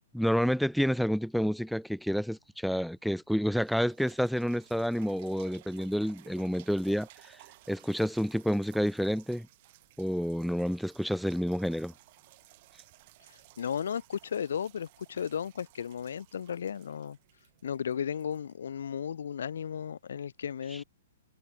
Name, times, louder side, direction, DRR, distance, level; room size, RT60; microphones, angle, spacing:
voice 1, 0.1-7.1 7.7-9.5 10.0-11.9, equal, ahead, 0.5 m, -29 dB
sound 1, 3.0-3.1 3.5-19.2 19.8-19.9, right 20 dB, 45° right, 6.6 m, -58 dB
voice 2, 13.3-17.2 17.6-20.8, left 8 dB, 80° left, 0.8 m, -35 dB
hypercardioid pair, 150°, 0 cm